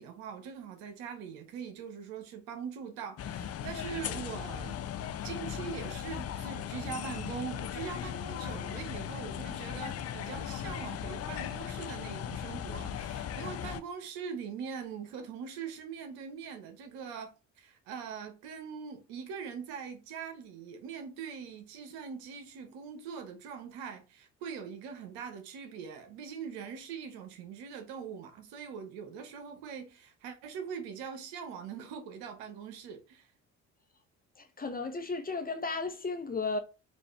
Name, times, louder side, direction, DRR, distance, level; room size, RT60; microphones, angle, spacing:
voice 1, 0.0-4.8 5.2-33.3, right 6 dB, 75° right, 1.1 m, -42 dB
sound 1, 3.2-13.8, left 9 dB, 40° left, 0.5 m, -38 dB
voice 2, 34.4-36.6, left 3 dB, 25° left, 0.9 m, -34 dB
4.2 x 2.6 x 3.2 m
hypercardioid pair, 60°, 38 cm